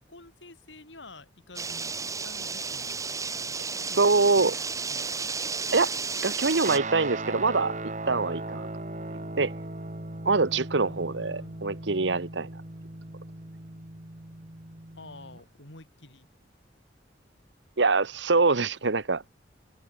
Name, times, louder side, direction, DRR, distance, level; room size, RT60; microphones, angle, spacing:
voice 1, 0.1-2.9 3.2-5.1 10.8-11.6 15.0-16.3, left 2 dB, 80° left, 6.7 m, -49 dB
sound 1, 1.6-6.8, right 5 dB, 20° right, 1.4 m, -33 dB
voice 2, 4.0-4.5 5.7-5.9 6.2-7.7 8.1-8.7 9.4-9.5 10.2-12.5 17.8-19.2, right 3 dB, 75° right, 1.2 m, -24 dB
Guitar, 6.6-15.4, right 2 dB, 40° right, 2.5 m, -38 dB
head